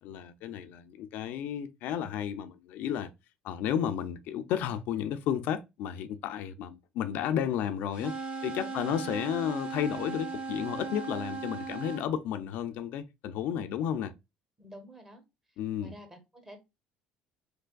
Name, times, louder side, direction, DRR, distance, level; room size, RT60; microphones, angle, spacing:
voice 1, 0.0-3.1 3.4-8.1 8.4-14.1 15.6-15.9, left 9 dB, 75° left, 0.4 m, -32 dB
sound 1, 7.9-12.1, right 4 dB, 40° right, 0.9 m, -37 dB
voice 2, 8.6-8.9 14.6-15.2 15.8-16.6, equal, 15° right, 1.0 m, -49 dB
3.3 x 3.3 x 2.2 m
cardioid pair, 105°, 3 cm